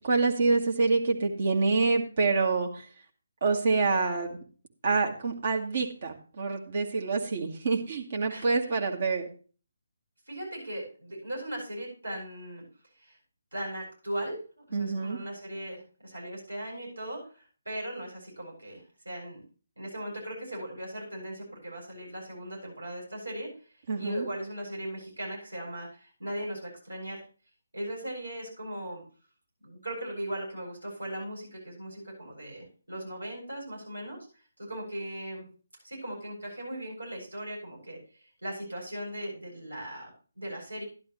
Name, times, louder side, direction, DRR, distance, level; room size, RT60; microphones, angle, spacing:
voice 1, 0.0-2.7 3.4-4.4 4.8-9.3 14.7-15.2 23.9-24.2, right 4 dB, 45° right, 2 dB, 1.8 m, -26 dB
voice 2, 8.3-8.8 10.3-12.6 13.0-13.2 13.5-19.4 19.8-23.5 24.0-27.2 27.7-29.0 29.6-34.2 34.6-35.5 35.8-40.8, right 1 dB, 80° right, -1 dB, 7.6 m, -38 dB
11.5 x 11.5 x 3.2 m, 0.37 s
figure-of-eight pair, 145°, 0 cm